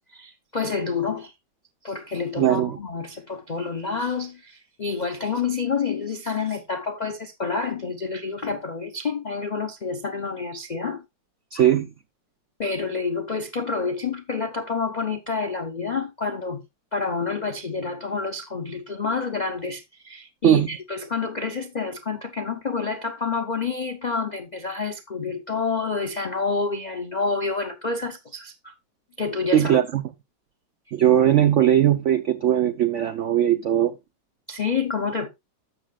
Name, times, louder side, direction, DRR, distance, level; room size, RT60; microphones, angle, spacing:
voice 1, 0.1-1.3 1.8-11.0 12.6-16.6 16.9-28.7 29.2-29.8 34.5-35.3, left 4 dB, 70° left, 0.4 m, -28 dB
voice 2, 2.4-2.8 11.5-11.9 20.4-20.7 29.5-30.0 30.9-33.9, right 11 dB, 85° right, 0.6 m, -19 dB
12.5 x 7.4 x 2.3 m
omnidirectional pair, 2.0 m